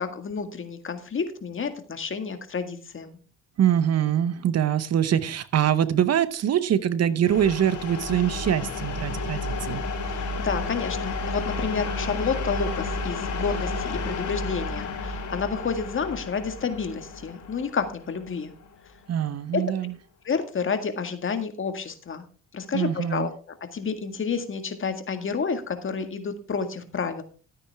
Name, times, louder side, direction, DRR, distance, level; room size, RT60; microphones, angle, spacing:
voice 1, 0.0-3.2 10.1-18.5 19.5-19.6 20.3-22.2 22.5-23.3 23.7-27.2, left 5 dB, 40° left, 8 dB, 1.9 m, -30 dB
voice 2, 3.6-9.8 19.1-19.9 22.7-23.3, right 10 dB, 55° right, 15 dB, 0.9 m, -24 dB
sound 1, 7.2-18.9, left 3 dB, 70° left, 5.1 m, -32 dB
13.5 x 8.9 x 3.5 m, 0.38 s
cardioid pair, 90°, 30 cm